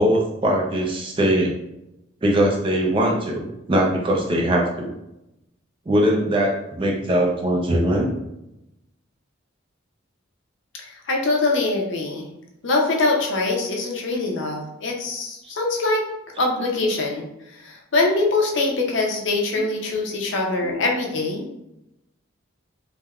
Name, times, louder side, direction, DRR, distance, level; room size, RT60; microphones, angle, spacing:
voice 1, 0.0-1.6 2.2-4.9 5.9-8.1 15.4-15.5 20.6-20.8, right 1 dB, 25° right, 0 dB, 0.4 m, -21 dB
voice 2, 10.8-12.3 12.6-16.0 16.4-17.2 17.5-21.6, left 2 dB, 65° left, 0 dB, 0.5 m, -23 dB
3.3 x 2.1 x 2.3 m, 0.88 s
head